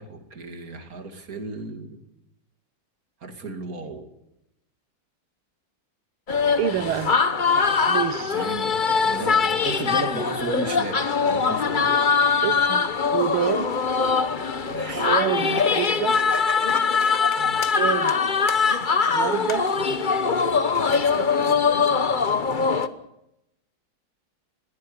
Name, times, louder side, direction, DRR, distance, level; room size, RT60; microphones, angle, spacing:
voice 1, 0.0-2.0 3.2-4.1 8.2-11.9 14.7-15.1 17.3-17.6 20.7-21.1, right 2 dB, 45° right, 2.8 m, -35 dB
sound 1, 6.3-22.9, left 5 dB, 35° left, 0.8 m, -22 dB
voice 2, 6.6-7.2 7.9-8.4 12.4-13.7 14.8-16.2 17.7-18.2 19.1-19.7 21.1-21.6, right 10 dB, 90° right, 1.8 m, -28 dB
21.0 x 16.5 x 8.6 m
omnidirectional pair, 2.3 m